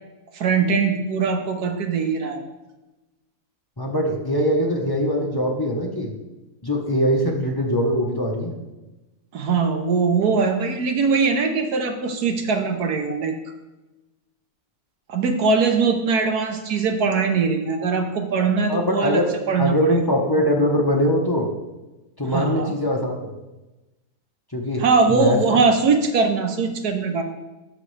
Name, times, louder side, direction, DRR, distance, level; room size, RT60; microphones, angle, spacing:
voice 1, 0.3-2.4 9.3-13.4 15.1-19.2 19.5-19.7 22.2-22.7 24.8-27.2, right 4 dB, 65° right, 5 dB, 1.3 m, -21 dB
voice 2, 3.8-6.1 6.6-8.5 18.7-21.5 22.2-23.3 24.5-25.4, equal, 20° left, -1 dB, 0.6 m, -22 dB
11.5 x 6.2 x 3.3 m, 1.1 s
omnidirectional pair, 1.9 m